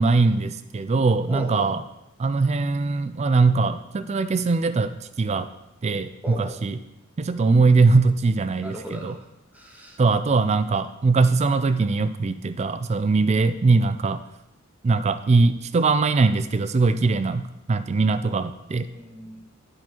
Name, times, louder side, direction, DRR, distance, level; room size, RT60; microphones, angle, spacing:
voice 1, 0.0-1.8 2.2-5.5 5.8-6.8 7.2-9.2 10.0-14.2 14.8-17.4 17.7-18.9, right 3 dB, 30° right, 12 dB, 0.3 m, -21 dB
voice 2, 1.3-1.7 6.2-6.7 8.6-9.2 9.5-10.0 18.9-19.4, equal, 10° right, -1 dB, 1.0 m, -36 dB
10.5 x 3.9 x 4.4 m, 0.88 s
head